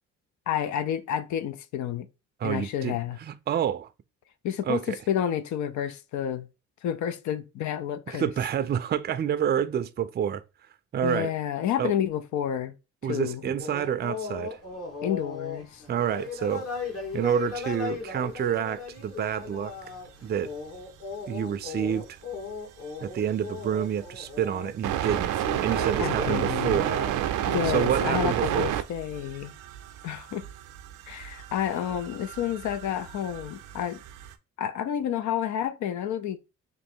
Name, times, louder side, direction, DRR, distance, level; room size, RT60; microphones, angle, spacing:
voice 1, 0.5-2.1 2.4-3.2 4.4-6.5 6.8-8.3 11.0-12.7 13.1-13.5 15.0-15.8 26.0-26.9 27.5-29.5 30.0-30.4 31.1-34.0 34.6-36.4, left 10 dB, 75° left, 0.5 m, -30 dB
voice 2, 2.4-3.9 4.7-5.0 8.1-10.4 10.9-11.3 11.8-12.0 13.0-14.6 15.9-16.6 17.1-19.7 20.2-20.5 21.3-22.2 23.0-25.3 25.6-27.0 27.7-28.7, right 9 dB, 35° right, 0.4 m, -28 dB
sound 1, 13.6-28.2, left 5 dB, 50° left, 1.5 m, -37 dB
sound 2, 20.7-20.8 23.9-24.1 24.8-34.3, right 11 dB, 90° right, 0.5 m, -31 dB
3.1 x 2.6 x 4.3 m
cardioid pair, 90°, 30 cm